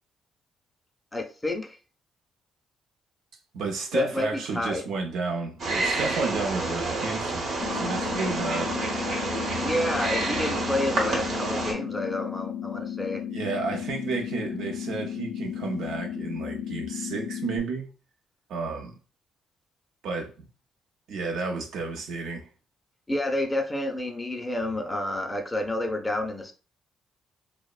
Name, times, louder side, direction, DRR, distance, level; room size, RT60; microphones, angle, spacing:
voice 1, 1.1-1.8 3.9-4.9 9.6-13.2 23.1-26.5, left 1 dB, 15° left, 0.5 m, -29 dB
voice 2, 3.5-8.7 13.3-17.9 18.5-18.9 20.0-20.5 21.1-22.5, right 4 dB, 80° right, 0.5 m, -32 dB
Wild animals, 5.6-11.7, right 2 dB, 65° right, 0.9 m, -29 dB
sound 1, 7.6-17.6, left 9 dB, 90° left, 0.3 m, -34 dB
2.9 x 2.0 x 2.3 m
cardioid pair, 90°, 0 cm